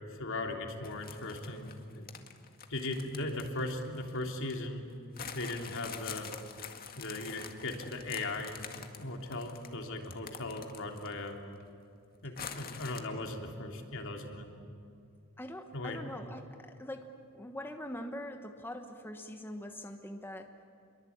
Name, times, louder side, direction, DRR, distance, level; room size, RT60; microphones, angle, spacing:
voice 1, 0.1-2.1 2.7-4.8 5.3-6.3 6.9-11.4 12.2-14.5 15.7-16.0, left 2 dB, 60° left, 3 dB, 3.3 m, -38 dB
sound 1, 0.8-4.6 5.2-11.3 11.6-11.7 12.4-13.0, left 7 dB, 45° left, 2.0 m, -46 dB
voice 2, 15.4-17.1 17.3-20.5, left 1 dB, 10° left, 5 dB, 1.3 m, -43 dB
29.5 x 23.0 x 8.8 m, 2.5 s
head